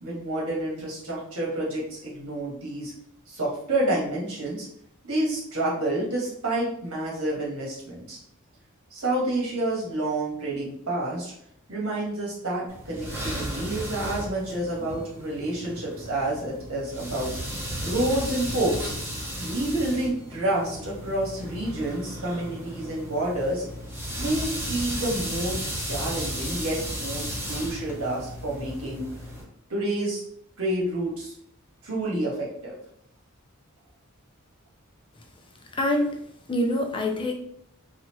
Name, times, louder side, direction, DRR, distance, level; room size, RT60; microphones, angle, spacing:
voice 1, 0.0-2.9 3.3-4.7 5.0-8.2 8.9-11.3 11.7-17.3 17.8-18.9 19.4-23.6 24.2-29.0 29.7-30.2 30.6-31.3 31.8-32.7, right 1 dB, 85° right, -4 dB, 1.5 m, -29 dB
sound 1, 12.7-29.4, equal, 10° right, 0.9 m, -34 dB
voice 2, 35.8-36.2 36.5-37.3, left 1 dB, 25° left, 2 dB, 0.5 m, -25 dB
4.1 x 2.5 x 3.0 m, 0.70 s
head